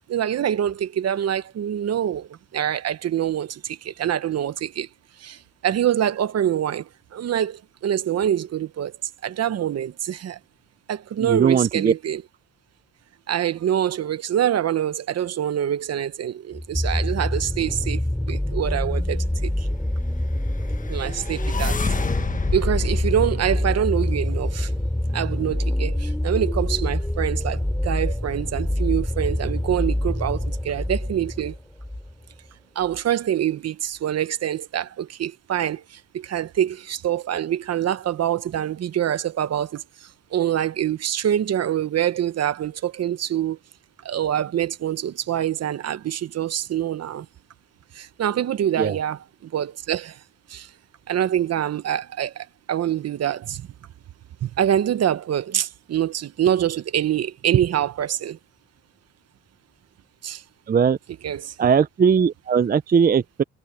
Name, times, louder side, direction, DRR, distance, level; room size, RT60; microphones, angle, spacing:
voice 1, 0.1-4.9 5.2-9.0 9.2-10.4 10.9-12.2 13.3-18.0 18.3-19.7 20.9-21.8 22.5-24.7 25.1-31.6 32.7-43.6 44.0-47.3 47.9-50.2 50.5-50.7 51.1-53.7 54.4-58.4 60.2-60.4 61.2-61.6, right 10 dB, 55° right, 1.0 m, -25 dB
voice 2, 11.2-11.9 48.8-49.0 60.7-61.0 61.6-63.4, right 6 dB, 30° right, 0.6 m, -19 dB
sound 1, 16.5-32.1 32.9-33.0, left 1 dB, 5° left, 4.1 m, -26 dB
sound 2, 20.5-24.7, left 4 dB, 25° left, 1.5 m, -29 dB
cardioid pair, 90°, 30 cm